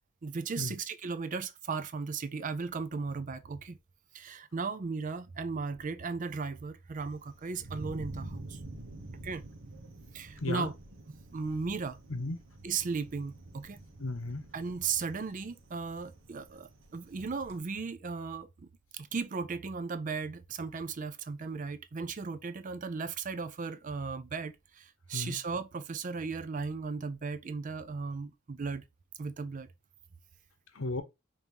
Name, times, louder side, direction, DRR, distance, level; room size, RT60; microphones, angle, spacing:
voice 1, 0.2-3.8 4.1-8.6 9.2-9.4 10.1-10.7 11.3-12.0 12.6-13.8 14.5-16.7 16.9-18.5 19.0-24.5 25.1-28.8 29.2-29.7, right 4 dB, 40° right, 0.5 m, -36 dB
Thunder, 7.0-17.6, right 1 dB, 70° right, 1.0 m, -48 dB
voice 2, 10.4-10.7 12.1-12.4 14.0-14.5 25.1-25.4 30.7-31.0, left 2 dB, 85° left, 0.8 m, -34 dB
5.3 x 2.7 x 2.9 m
head